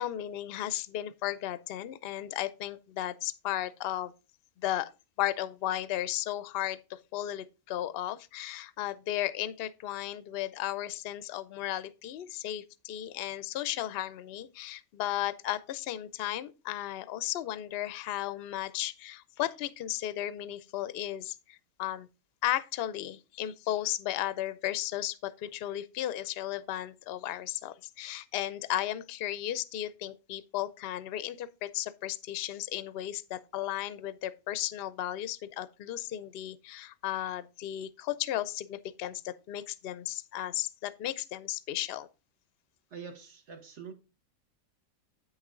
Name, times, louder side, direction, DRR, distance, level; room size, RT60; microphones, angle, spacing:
voice 1, 0.0-4.1 4.6-4.9 5.2-22.1 22.4-42.1, left 13 dB, 60° left, 0.6 m, -35 dB
voice 2, 42.9-43.9, right 6 dB, 55° right, 1.5 m, -45 dB
8.8 x 6.4 x 3.7 m
omnidirectional pair, 1.5 m